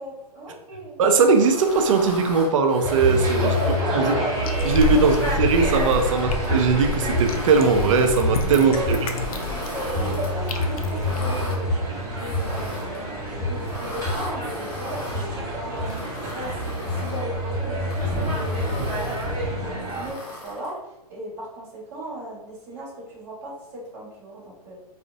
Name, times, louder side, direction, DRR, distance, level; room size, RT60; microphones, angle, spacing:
voice 1, 0.0-1.0 3.4-4.3 4.9-5.3 8.6-8.9 9.3-9.6 10.0-11.7 12.0-19.2 19.4-21.6 21.9-24.8, right 1 dB, 30° right, -5 dB, 1.2 m, -35 dB
voice 2, 1.0-3.5 3.9-4.2 4.6-9.0, right 4 dB, 55° right, 5 dB, 0.5 m, -19 dB
sound 1, 1.2-3.8 4.4-6.6 7.1-8.2 8.7-10.3 10.9-11.6 12.2-13.0 13.5-15.2 15.8-17.3 17.8-19.3 19.9-20.8, left 2 dB, 25° left, 0.8 m, -38 dB
sound 2, 2.8-20.1, equal, 15° right, 1.0 m, -27 dB
sound 3, 4.4-11.3, left 1 dB, 65° left, 0.4 m, -30 dB
2.4 x 2.1 x 2.4 m, 0.95 s
hypercardioid pair, 130°, 20 cm